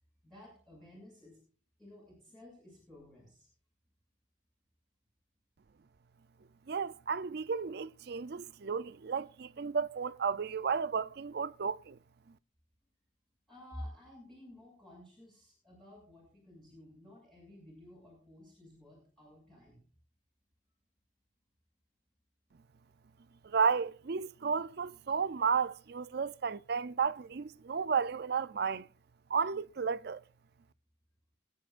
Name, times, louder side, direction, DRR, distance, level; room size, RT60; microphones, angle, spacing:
voice 1, 0.2-1.4 1.8-3.5 13.5-19.9, left 1 dB, 5° left, 6.7 m, -52 dB
voice 2, 6.7-12.0 23.4-28.9 29.3-30.2, right 6 dB, 55° right, 0.5 m, -33 dB
25.0 x 10.0 x 2.5 m
head